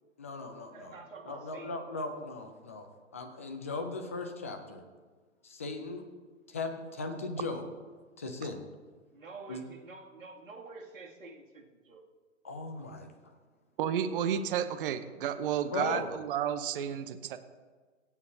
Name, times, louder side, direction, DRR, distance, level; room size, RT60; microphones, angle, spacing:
voice 1, 0.2-1.0 1.2-2.9 3.1-4.8 5.4-6.1 6.5-7.7 8.2-8.6 9.5-9.6 12.4-13.3 15.7-16.2, left 3 dB, 10° left, 6 dB, 0.3 m, -38 dB
voice 2, 0.7-1.7 9.1-12.0, right 3 dB, 75° right, -2 dB, 2.6 m, -48 dB
voice 3, 13.8-17.4, right 9 dB, 45° right, 10 dB, 0.8 m, -31 dB
23.5 x 8.5 x 2.8 m, 1.4 s
figure-of-eight pair, 120°, 40 cm